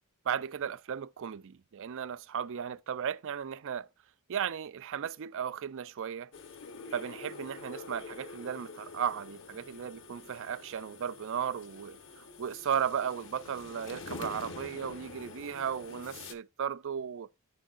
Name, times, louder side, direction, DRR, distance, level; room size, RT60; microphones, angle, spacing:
voice 1, 0.3-3.9 4.3-6.3 6.9-17.3, right 8 dB, 60° right, 0.4 m, -35 dB
sound 1, 6.3-16.3, left 4 dB, 60° left, 1.2 m, -46 dB
14.0 x 4.7 x 2.5 m
head